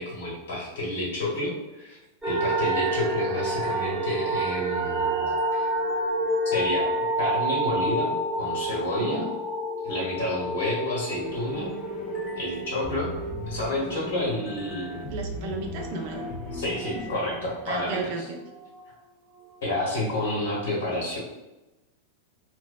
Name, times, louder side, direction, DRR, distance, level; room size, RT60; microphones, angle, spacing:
voice 1, 0.0-2.0 2.2-5.7 6.5-6.9 7.2-9.3 9.8-11.7 12.4-13.1 13.5-15.1 16.5-18.3 19.6-21.2, left 1 dB, 60° left, -5 dB, 1.3 m, -30 dB
sound 1, 2.2-17.1 17.4-18.8 19.3-19.4, right 1 dB, 10° right, 0.8 m, -29 dB
sound 2, 11.1-17.8, left 2 dB, 30° left, 0.5 m, -38 dB
voice 2, 15.1-16.2 17.7-18.4, right 3 dB, 50° right, 3 dB, 0.4 m, -33 dB
2.8 x 2.5 x 2.2 m, 1.0 s
figure-of-eight pair, 90°, 0 cm